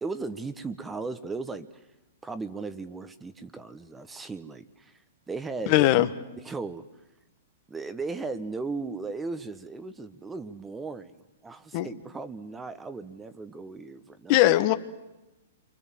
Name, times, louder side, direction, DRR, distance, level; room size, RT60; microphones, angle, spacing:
voice 1, 0.0-1.8 2.2-5.0 5.3-6.0 6.4-6.8 7.7-14.4, right 3 dB, 10° right, 12 dB, 1.2 m, -36 dB
voice 2, 5.7-6.1 11.7-11.9 14.3-14.7, left 15 dB, 45° left, 11 dB, 1.3 m, -20 dB
28.5 x 24.5 x 7.6 m, 0.98 s
hypercardioid pair, 125°, 0 cm